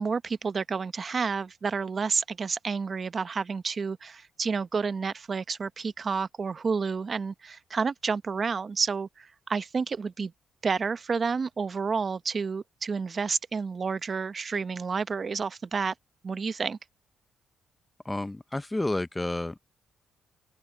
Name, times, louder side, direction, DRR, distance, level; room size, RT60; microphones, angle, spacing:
voice 1, 0.0-10.3 10.6-15.9 16.2-16.8, right 5 dB, 40° right, 0.9 m, -30 dB
voice 2, 18.0-19.6, left 2 dB, 15° left, 0.6 m, -30 dB
open air
cardioid pair, 90°, 0 cm